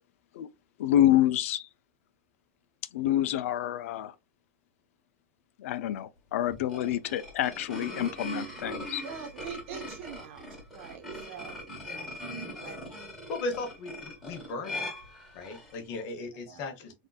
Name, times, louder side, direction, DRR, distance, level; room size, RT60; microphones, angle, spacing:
voice 1, 0.8-1.7 2.9-4.1 5.6-9.0, left 12 dB, 85° left, 0.4 m, -27 dB
sound 1, 6.5-15.8, equal, ahead, 1.4 m, -40 dB
voice 2, 9.0-10.4 10.7-12.1 12.6-12.8 16.5-16.6, right 7 dB, 70° right, 1.2 m, -43 dB
voice 3, 13.3-15.0 15.3-16.9, left 3 dB, 40° left, 1.0 m, -37 dB
3.6 x 2.6 x 2.3 m
supercardioid pair, 170°, 7 cm